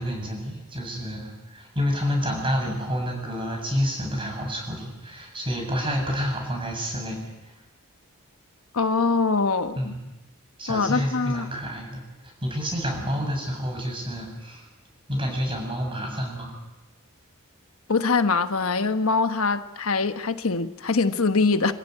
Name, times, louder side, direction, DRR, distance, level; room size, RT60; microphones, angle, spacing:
voice 1, 0.0-7.2 9.8-10.0 10.6-12.0 12.4-14.7 15.1-16.5, equal, 25° right, 7.7 m, -29 dB
voice 2, 8.7-9.9 10.7-11.5 17.9-21.7, left 4 dB, 85° left, 1.2 m, -23 dB
28.0 x 15.0 x 9.7 m
head